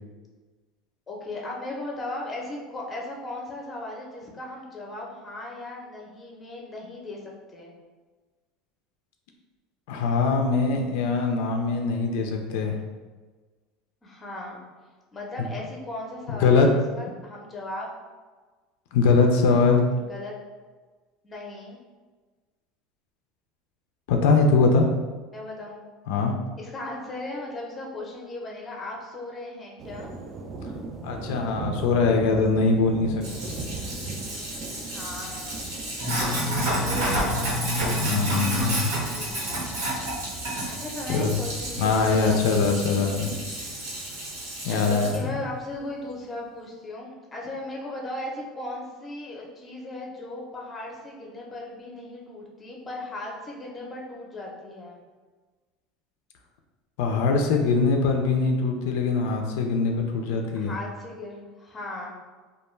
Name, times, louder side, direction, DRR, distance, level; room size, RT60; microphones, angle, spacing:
voice 1, 1.1-7.7 14.0-14.6 15.1-17.9 19.9-20.3 21.2-21.8 25.3-25.8 26.6-30.1 34.9-35.7 36.5-38.1 39.0-39.7 40.7-42.7 44.7-55.0 60.5-62.1, left 2 dB, 20° left, -2 dB, 0.6 m, -37 dB
voice 2, 9.9-12.7 15.4-15.5 16.4-16.7 18.9-19.8 24.1-24.9 26.1-26.3 31.0-33.5 38.0-38.9 41.1-41.3 41.8-43.3 44.6-45.4 57.0-60.7, left 4 dB, 80° left, 2 dB, 0.3 m, -22 dB
sound 1, 29.8-45.9, right 3 dB, 40° right, 0.3 m, -39 dB
Sink (filling or washing), 33.2-45.2, equal, 90° right, 1.1 m, -30 dB
2.3 x 2.2 x 3.0 m, 1.3 s
supercardioid pair, 140°, 0 cm